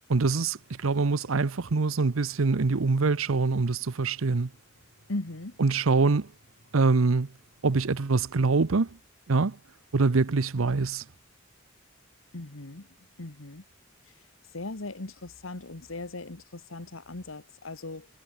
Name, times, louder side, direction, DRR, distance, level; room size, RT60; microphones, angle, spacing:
voice 1, 0.1-4.5 5.6-6.3 6.7-7.3 7.6-8.9 9.3-9.6 9.9-11.0, right 3 dB, 85° right, 0.8 m, -24 dB
sound 1, 0.6-8.0, right 1 dB, 70° right, 7.1 m, -64 dB
voice 2, 5.1-5.6 12.3-12.9 13.2-13.6 14.5-18.1, left 2 dB, 80° left, 1.7 m, -38 dB
head